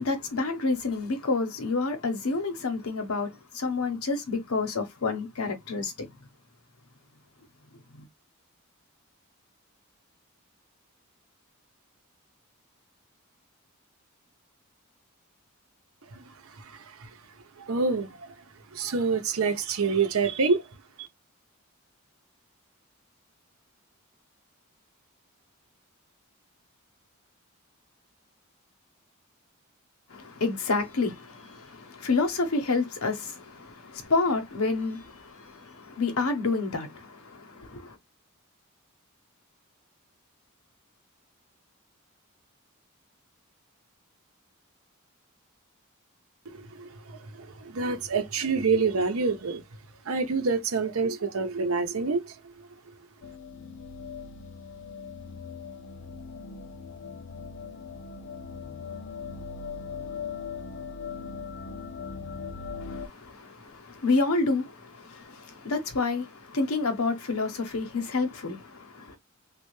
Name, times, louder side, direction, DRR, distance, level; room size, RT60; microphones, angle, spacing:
voice 1, 0.0-6.1 7.9-8.1 30.1-38.0 62.8-69.2, left 3 dB, 85° left, 0.9 m, -29 dB
voice 2, 17.6-18.2 18.7-20.6 46.5-46.9 47.4-49.6 50.1-52.3, right 4 dB, 75° right, 0.7 m, -26 dB
sound 1, 53.2-63.1, left 5 dB, 60° left, 0.6 m, -39 dB
3.3 x 2.3 x 3.1 m
head